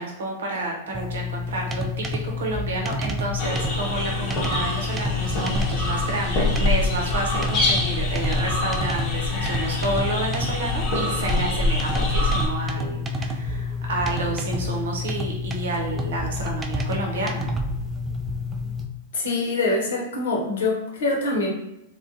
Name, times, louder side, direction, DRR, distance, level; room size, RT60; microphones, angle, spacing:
voice 1, 0.0-17.5, right 2 dB, 70° right, 0 dB, 0.7 m, -30 dB
sound 1, 0.9-18.9, left 2 dB, 20° right, 0.3 m, -29 dB
sound 2, 3.4-12.5, left 2 dB, 35° left, 0.8 m, -25 dB
voice 2, 19.1-21.5, left 2 dB, 70° left, -1 dB, 0.7 m, -24 dB
2.3 x 2.1 x 2.6 m, 0.86 s
hypercardioid pair, 100°, 0 cm